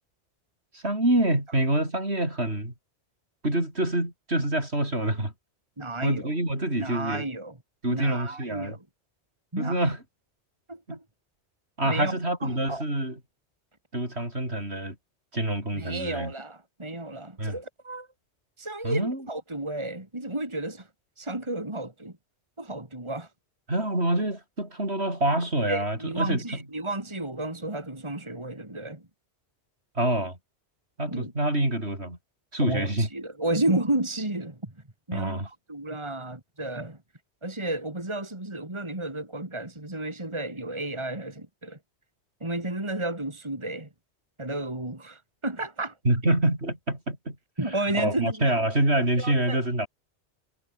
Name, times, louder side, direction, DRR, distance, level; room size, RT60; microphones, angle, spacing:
voice 1, 0.7-2.7 3.4-5.3 6.0-7.3 7.8-8.8 9.6-10.0 10.9-11.0 11.8-13.2 13.9-15.0 15.3-16.3 17.4-17.6 18.8-19.3 23.7-26.4 30.0-30.4 31.0-32.2 32.5-33.1 35.1-35.5 46.0-47.4 47.9-49.9, right 1 dB, 70° right, 7.9 m, -26 dB
voice 2, 5.8-6.3 6.8-7.6 7.9-8.8 9.5-9.9 10.7-11.0 11.8-12.1 12.4-12.8 15.7-18.1 18.6-20.9 21.2-22.1 22.6-23.3 25.7-29.0 31.1-31.3 32.6-34.7 35.1-37.0 37.4-41.8 42.4-43.9 44.4-46.0 47.6-48.6 49.2-49.6, right 2 dB, 25° right, 3.1 m, -32 dB
omnidirectional pair, 1.1 m